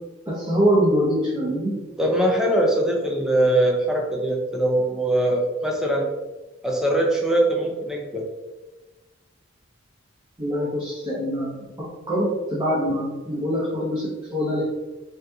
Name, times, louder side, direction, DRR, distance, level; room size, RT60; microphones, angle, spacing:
voice 1, 0.3-1.7 10.4-11.6 12.1-14.6, equal, 20° right, -10 dB, 0.9 m, -23 dB
voice 2, 2.0-6.1 6.6-8.2, right 1 dB, 5° right, -1 dB, 0.5 m, -22 dB
2.7 x 2.5 x 3.4 m, 1.1 s
head